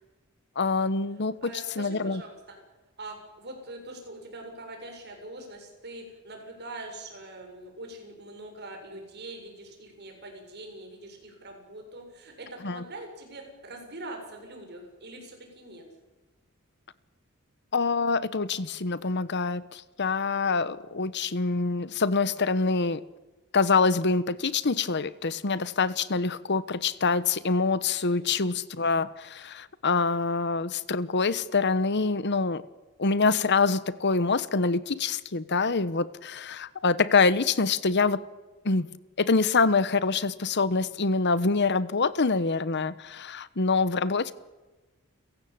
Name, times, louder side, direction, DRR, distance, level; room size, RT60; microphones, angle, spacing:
voice 1, 0.6-1.5 1.8-2.2 12.6-12.8 17.7-23.0 23.5-32.6 33.0-38.2 38.6-38.9 39.2-44.3, left 4 dB, 55° left, 17 dB, 1.1 m, -25 dB
voice 2, 1.4-2.6 3.0-15.9 28.1-28.4, right 2 dB, 50° right, 3 dB, 7.3 m, -43 dB
30.0 x 16.5 x 8.8 m, 1.1 s
head